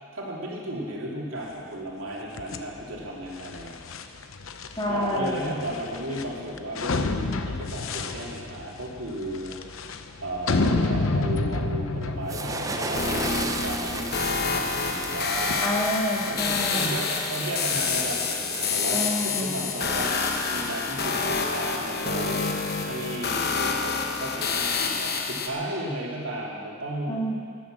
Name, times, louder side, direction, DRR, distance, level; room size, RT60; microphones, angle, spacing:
voice 1, 0.1-3.8 4.9-9.6 10.2-15.7 16.3-22.4 22.8-27.2, right 1 dB, 70° right, -4 dB, 3.0 m, -34 dB
sound 1, 2.3-15.6, left 3 dB, 75° left, 0.8 m, -30 dB
voice 2, 4.8-5.6 15.6-17.0 18.9-19.6 27.1-27.4, equal, 20° left, -3 dB, 2.1 m, -28 dB
sound 2, 12.3-19.0, right 3 dB, 15° right, 0.5 m, -36 dB
sound 3, 12.9-25.5, left 5 dB, 50° left, 1.1 m, -28 dB
13.5 x 10.5 x 7.6 m, 2.2 s
head